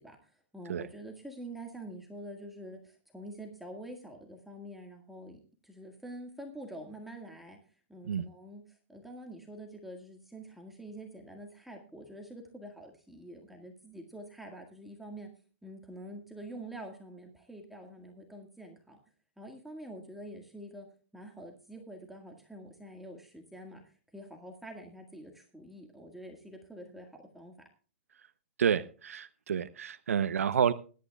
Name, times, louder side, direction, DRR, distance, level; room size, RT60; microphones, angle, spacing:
voice 1, 0.0-15.3 15.6-19.0 19.4-20.9 21.1-27.5, right 1 dB, ahead, 1.8 m, -46 dB
voice 2, 28.6-30.7, right 8 dB, 90° right, 0.7 m, -29 dB
21.0 x 12.0 x 2.3 m
hypercardioid pair, 145°, 7 cm